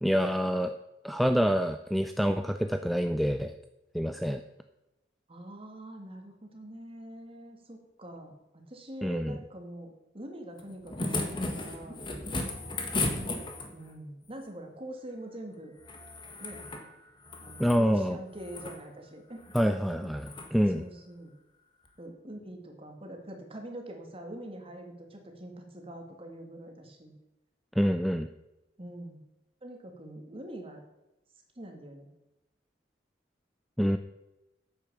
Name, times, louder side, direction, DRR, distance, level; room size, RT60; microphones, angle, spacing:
voice 1, 0.0-0.7 1.0-3.5 3.9-4.4 9.0-9.4 17.6-18.2 19.5-20.8 27.8-28.3 33.8-34.0, equal, ahead, 8 dB, 0.4 m, -26 dB
voice 2, 5.3-8.3 8.7-12.0 13.7-15.7 16.4-16.6 17.4-19.5 20.0-20.1 20.7-21.3 22.0-27.1 28.8-29.2 29.6-30.8 31.6-32.1, right 1 dB, 30° right, 3 dB, 2.1 m, -44 dB
sound 1, 10.6-13.9 15.8-16.9 17.2-17.8 18.3-18.8 19.4-19.7 20.2-20.5 21.9-22.0, left 2 dB, 25° left, 1.6 m, -35 dB
9.5 x 8.3 x 6.8 m, 0.95 s
head